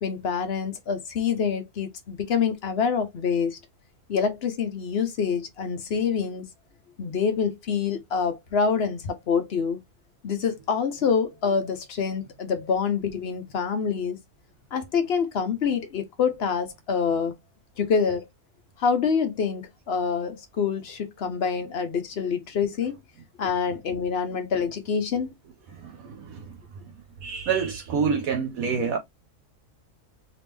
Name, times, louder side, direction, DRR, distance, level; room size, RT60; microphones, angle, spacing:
voice 1, 0.0-3.6 4.1-6.5 7.0-9.8 10.2-14.2 14.7-17.3 17.8-18.3 18.8-23.0 23.4-25.3, left 6 dB, 55° left, 0.8 m, -26 dB
voice 2, 25.8-26.5 27.2-29.0, right 6 dB, 70° right, 1.1 m, -27 dB
3.5 x 2.9 x 3.2 m
omnidirectional pair, 1.6 m